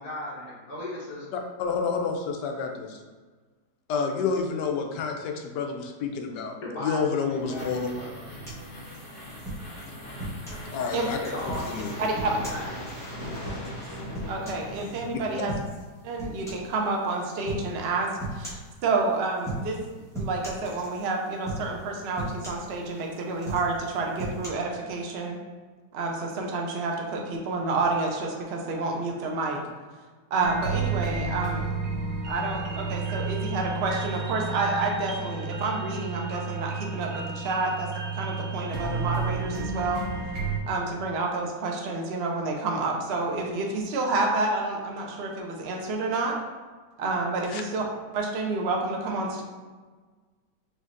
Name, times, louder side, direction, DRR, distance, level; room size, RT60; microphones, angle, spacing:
voice 1, 0.0-1.2 6.3-8.3 11.2-12.7, left 1 dB, 60° left, -6 dB, 1.5 m, -37 dB
voice 2, 1.3-3.0 3.9-6.6 6.8-7.9 10.7-11.2 11.7-11.9 47.5-47.6, left 5 dB, 75° left, 3 dB, 1.1 m, -29 dB
sound 1, 6.9-15.7, equal, 30° left, 1.2 m, -40 dB
sound 2, 8.5-10.7 11.2-15.0 15.5-15.9 16.2-16.7 17.5-17.7 18.2-18.7 19.4-19.8 20.1-21.1 21.5-21.8 22.2-23.0 23.4-24.5, right 1 dB, 5° left, 0.6 m, -36 dB
voice 3, 14.3-15.5 16.0-19.8 20.2-25.4 25.9-29.6 30.3-31.7 32.3-37.9 38.1-40.0 40.7-46.3 47.0-47.8 48.1-49.4, right 3 dB, 85° right, 0 dB, 0.5 m, -29 dB
sound 3, 30.4-40.6, right 4 dB, 60° right, 1.1 m, -31 dB
5.2 x 3.2 x 2.5 m, 1.4 s
omnidirectional pair, 1.9 m